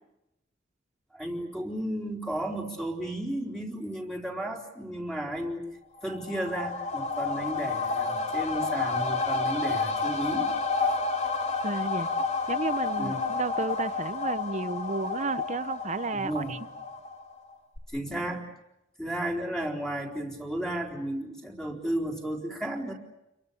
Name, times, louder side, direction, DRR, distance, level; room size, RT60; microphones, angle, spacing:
voice 1, 1.1-5.7 6.0-10.5 13.0-13.2 16.1-16.6 17.9-18.5 19.0-22.9, right 1 dB, 5° left, 1 dB, 4.0 m, -33 dB
sound 1, 6.0-17.4 17.8-17.9, left 4 dB, 35° left, 3.6 m, -30 dB
voice 2, 11.6-12.1 12.5-16.6, right 3 dB, 40° right, 14 dB, 0.9 m, -32 dB
30.0 x 23.0 x 7.1 m, 0.91 s
head